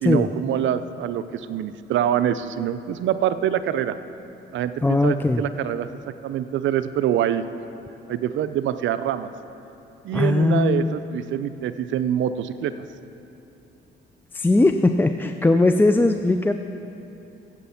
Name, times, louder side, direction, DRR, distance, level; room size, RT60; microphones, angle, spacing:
voice 1, 0.0-3.9 4.5-5.9 6.2-7.4 8.1-9.3 10.0-12.7, right 10 dB, 75° right, 12 dB, 0.5 m, -25 dB
voice 2, 4.8-5.4 10.1-10.9 14.3-16.5, left 2 dB, 10° left, 7 dB, 0.4 m, -19 dB
15.0 x 7.9 x 5.7 m, 2.8 s
cardioid pair, 90°, 20 cm